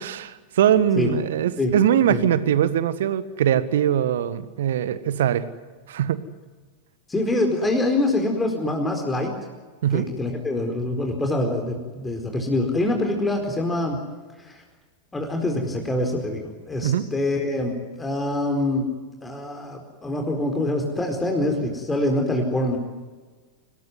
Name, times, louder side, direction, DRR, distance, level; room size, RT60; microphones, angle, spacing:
voice 1, 0.0-5.4 5.9-6.2 9.8-10.1 16.8-17.1, right 10 dB, 60° right, 14 dB, 1.6 m, -21 dB
voice 2, 7.1-9.3 9.9-14.0 14.5-14.6 15.1-18.9 19.2-22.8, left 1 dB, 10° left, 3 dB, 4.5 m, -25 dB
26.5 x 19.5 x 9.6 m, 1.4 s
figure-of-eight pair, 90°, 0 cm